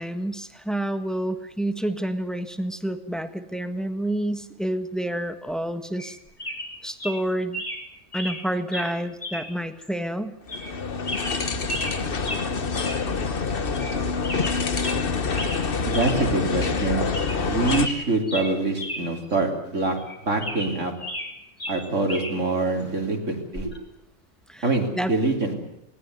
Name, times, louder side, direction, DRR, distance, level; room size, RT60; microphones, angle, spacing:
voice 1, 0.0-6.2 6.8-7.6 8.1-10.4 24.5-24.7 24.9-25.1, right 1 dB, ahead, 9 dB, 1.5 m, -29 dB
sound 1, 6.0-6.1 6.4-6.7 7.0-7.2 7.5-7.8 8.1-8.4 8.7-8.9 9.2-9.5 9.8-9.9 10.5-10.7 11.0-12.0 12.2-12.4 12.7-13.0 13.3-13.4 13.7-14.0 14.2-15.0 15.3-15.6 15.9-16.2 16.5-16.6 17.0-17.4 17.6-19.0 19.3-19.4 20.0-21.3 21.6-22.3 23.5-23.8, left 1 dB, 30° left, 3.7 m, -33 dB
sound 2, 10.5-17.9, left 4 dB, 45° left, 1.3 m, -26 dB
voice 2, 15.8-17.0 17.4-20.0 20.3-20.9 21.7-23.7 24.6-25.6, right 3 dB, 70° right, 2 dB, 3.7 m, -25 dB
19.5 x 19.0 x 9.5 m, 0.82 s
omnidirectional pair, 1.3 m